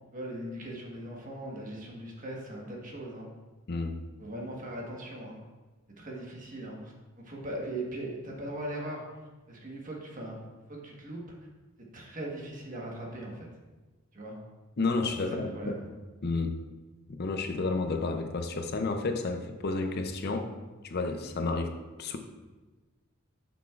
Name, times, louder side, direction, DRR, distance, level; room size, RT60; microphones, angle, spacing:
voice 1, 0.1-3.3 4.2-5.4 6.0-9.0 9.5-10.4 10.7-11.2 11.9-13.5 14.1-14.3 15.3-15.8, right 1 dB, 40° right, -2 dB, 1.4 m, -39 dB
voice 2, 3.7-4.0 14.8-15.7 16.2-16.6 17.1-20.5 20.8-22.2, left 3 dB, 55° left, 6 dB, 0.6 m, -31 dB
9.0 x 6.0 x 2.4 m, 1.2 s
head